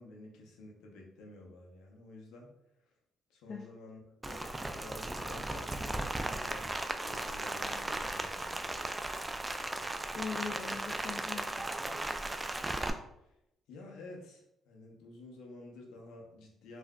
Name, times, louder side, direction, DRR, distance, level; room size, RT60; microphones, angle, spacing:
voice 1, 0.0-2.5 2.8-2.9 3.3-8.9 13.2-13.4 13.7-16.8, left 2 dB, 85° left, -1 dB, 0.7 m, -51 dB
Rain, 4.2-12.9, right 2 dB, 15° right, 0.3 m, -36 dB
voice 2, 10.1-12.2, left 5 dB, 60° left, 1 dB, 0.3 m, -42 dB
3.5 x 2.5 x 2.2 m, 0.83 s
supercardioid pair, 65°, 0 cm